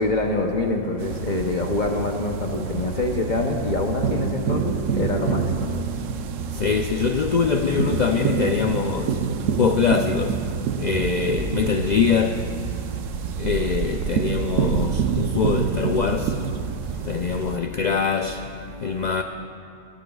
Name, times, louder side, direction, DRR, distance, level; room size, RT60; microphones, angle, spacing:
voice 1, 0.0-5.7, left 2 dB, 40° left, 0.8 m, -25 dB
sound 1, 1.0-17.6, right 7 dB, 80° right, 1.0 m, -27 dB
voice 2, 6.6-9.1 9.6-10.4 10.8-12.4 13.4-16.3 17.1-18.4 18.8-19.2, left 6 dB, 85° left, 0.3 m, -23 dB
19.5 x 17.0 x 2.3 m
omnidirectional pair, 1.3 m